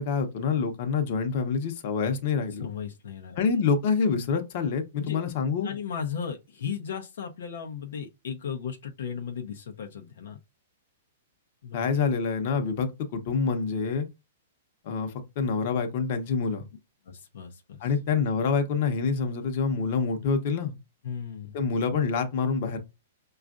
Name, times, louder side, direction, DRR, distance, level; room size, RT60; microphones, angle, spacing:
voice 1, 0.0-2.7 3.4-5.7 11.7-14.1 14.8-16.6 17.8-20.8 21.5-22.8, left 5 dB, 50° left, 0.8 m, -26 dB
voice 2, 2.6-3.4 5.0-5.2 5.6-10.4 11.6-11.8 17.1-17.9 21.0-21.6, left 7 dB, 75° left, 0.6 m, -36 dB
5.0 x 2.4 x 2.4 m
hypercardioid pair, 150°, 0 cm